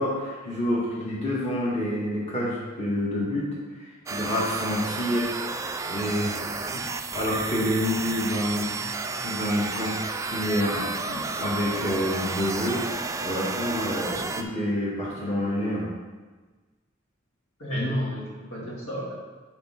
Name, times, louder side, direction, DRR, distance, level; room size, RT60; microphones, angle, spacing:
voice 1, 0.0-3.5 3.7-6.4 6.6-8.8 9.2-12.8 13.2-15.9, left 1 dB, 30° left, -6 dB, 1.7 m, -28 dB
sound 1, 4.1-14.4, right 4 dB, 15° right, 0.3 m, -32 dB
voice 2, 17.6-19.2, equal, 80° left, -6 dB, 2.6 m, -30 dB
7.2 x 4.5 x 5.7 m, 1.3 s
head